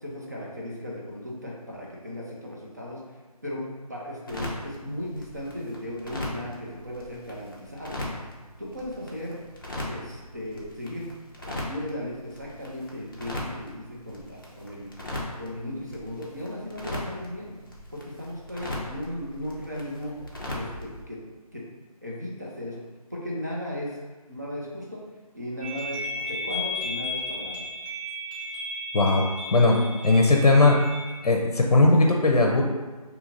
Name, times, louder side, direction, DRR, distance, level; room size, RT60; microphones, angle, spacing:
voice 1, 0.0-3.0 3.4-8.1 8.6-9.4 9.8-11.1 11.5-14.9 15.4-17.5 17.9-20.2 20.5-21.2 21.5-21.6 22.0-22.8 23.1-24.0 24.3-25.0 25.3-27.6, left 1 dB, 30° right, -4 dB, 0.5 m, -36 dB
sound 1, 4.3-21.0, left 1 dB, 35° left, 0.6 m, -39 dB
sound 2, 25.6-31.2, left 2 dB, 50° right, 1.4 m, -34 dB
voice 2, 28.9-29.8 30.0-30.8 31.2-32.6, left 2 dB, 80° left, 0 dB, 0.6 m, -19 dB
2.7 x 2.5 x 3.9 m, 1.3 s
figure-of-eight pair, 170°, 20 cm